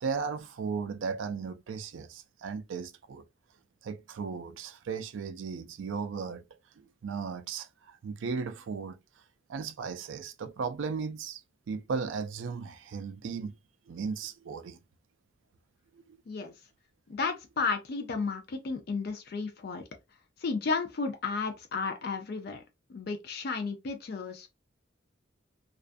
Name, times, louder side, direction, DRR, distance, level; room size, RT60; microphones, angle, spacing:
voice 1, 0.0-3.2 3.8-6.4 6.8-9.0 9.5-11.4 11.7-13.5 13.9-14.8, right 5 dB, 80° right, 0.4 m, -36 dB
voice 2, 17.1-19.8 20.4-22.6 22.9-24.5, left 4 dB, 55° left, 0.4 m, -33 dB
2.4 x 2.2 x 2.4 m
head